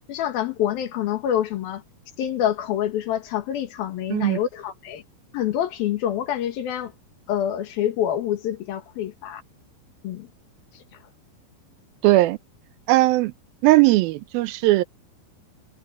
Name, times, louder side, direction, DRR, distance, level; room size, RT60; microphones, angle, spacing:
voice 1, 0.1-1.8 2.2-5.0 5.3-6.9 7.3-9.4 10.0-10.3, left 10 dB, 90° left, 3.5 m, -26 dB
voice 2, 12.0-12.4 12.9-13.3 13.6-14.8, right 18 dB, 85° right, 2.6 m, -18 dB
omnidirectional pair, 4.1 m